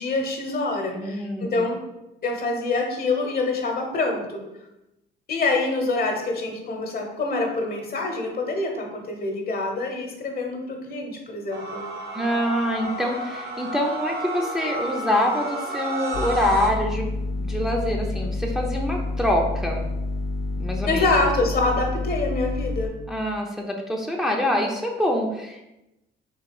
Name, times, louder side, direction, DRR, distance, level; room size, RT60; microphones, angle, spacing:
voice 1, 0.0-1.8 2.2-4.4 5.3-11.8 20.9-22.9, left 3 dB, 50° left, 2 dB, 1.0 m, -26 dB
voice 2, 0.9-1.5 12.1-17.1 17.4-19.8 20.6-21.2 23.1-25.6, left 1 dB, ahead, -1 dB, 0.6 m, -25 dB
sound 1, 11.5-16.7, right 1 dB, 55° right, 1.0 m, -31 dB
sound 2, 16.1-22.9, left 2 dB, 70° left, 0.5 m, -28 dB
3.9 x 2.7 x 4.8 m, 0.93 s
cardioid pair, 90°, 20 cm